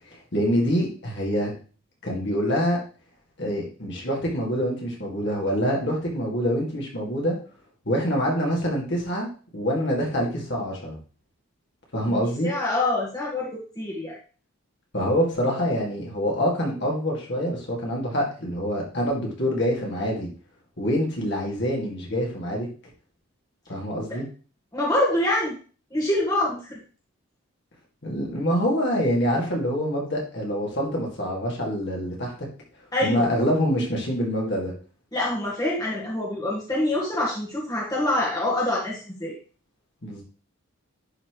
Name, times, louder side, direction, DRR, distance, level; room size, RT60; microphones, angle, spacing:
voice 1, 0.1-1.5 2.0-2.8 3.4-7.4 7.9-11.0 11.9-12.5 14.9-20.3 20.8-22.7 23.7-24.2 28.0-32.3 33.0-34.7 40.0-40.2, equal, 50° left, -2 dB, 2.3 m, -25 dB
voice 2, 12.0-14.2 24.7-25.5 25.9-26.8 32.9-33.3 35.1-39.3, left 1 dB, 15° left, -5 dB, 1.6 m, -25 dB
11.0 x 4.4 x 3.1 m, 0.38 s
head